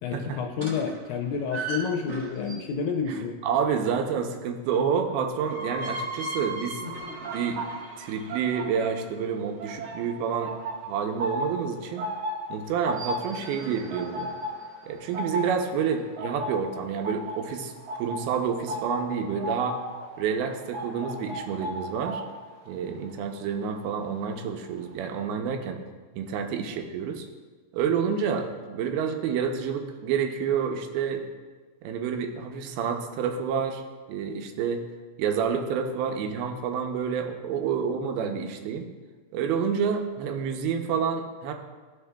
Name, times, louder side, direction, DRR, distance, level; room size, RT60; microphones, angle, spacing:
voice 1, 0.0-3.4, left 6 dB, 80° left, 2 dB, 2.1 m, -29 dB
sound 1, 0.6-2.9 5.1-9.1 12.7-15.0, right 2 dB, 45° right, 1.2 m, -38 dB
voice 2, 3.1-6.8 7.2-7.6 8.0-10.6 10.8-12.1 12.5-14.3 14.8-17.7 18.0-19.8 20.2-22.2 22.7-25.8 26.1-27.3 27.7-31.3 31.8-33.8 34.1-34.9 35.2-38.9 39.3-41.5, right 7 dB, 85° right, 4 dB, 2.6 m, -29 dB
sound 2, 7.1-9.3 9.6-24.4 24.7-25.0, equal, 65° right, 1.7 m, -36 dB
15.0 x 5.3 x 2.2 m, 1.4 s
omnidirectional pair, 4.3 m